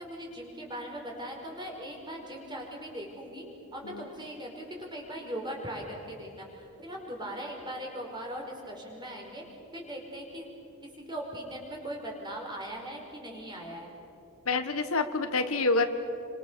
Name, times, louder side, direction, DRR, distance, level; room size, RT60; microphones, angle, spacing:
voice 1, 0.0-3.4 3.7-9.4 9.7-10.5 10.8-13.9, equal, 20° right, 0 dB, 5.1 m, -39 dB
voice 2, 14.5-15.9, left 3 dB, 75° left, 8 dB, 1.5 m, -27 dB
29.5 x 25.5 x 7.0 m, 2.8 s
head